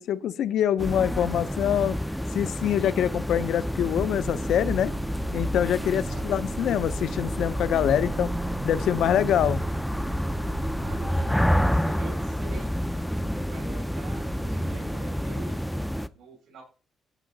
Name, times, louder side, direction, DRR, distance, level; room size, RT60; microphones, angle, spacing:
voice 1, 0.0-2.0 2.3-4.9 5.3-8.3 8.6-9.6, left 10 dB, 75° left, 0.6 m, -25 dB
sound 1, 0.8-16.1, equal, ahead, 0.4 m, -29 dB
sound 2, 4.0-15.2, right 6 dB, 70° right, 0.9 m, -41 dB
voice 2, 5.9-6.4 10.8-12.8 13.4-15.8 16.1-16.6, right 4 dB, 85° right, 5.3 m, -46 dB
14.0 x 5.6 x 3.9 m
cardioid pair, 130°, 0 cm